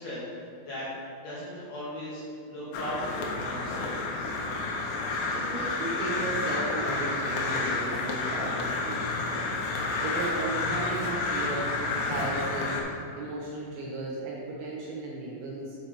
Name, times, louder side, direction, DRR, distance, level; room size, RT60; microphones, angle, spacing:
voice 1, 0.0-4.3, equal, 70° left, -9 dB, 2.7 m, -38 dB
Crow, 2.7-12.8, left 3 dB, 90° left, 3.3 m, -30 dB
voice 2, 5.4-15.8, right 2 dB, 75° right, -4 dB, 2.9 m, -35 dB
7.4 x 4.4 x 4.2 m, 2.6 s
omnidirectional pair, 5.9 m